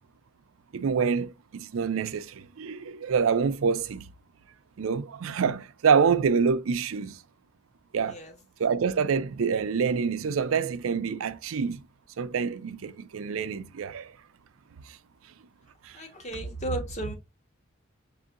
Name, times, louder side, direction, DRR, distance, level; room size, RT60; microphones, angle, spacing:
voice 1, 0.7-4.1 4.8-7.2 7.9-8.2 8.6-11.8 12.2-14.1 14.9-15.0 15.8-16.0, right 6 dB, 85° right, 0.4 m, -26 dB
voice 2, 15.9-17.1, right 2 dB, 35° left, 1.1 m, -33 dB
6.0 x 2.7 x 2.4 m
head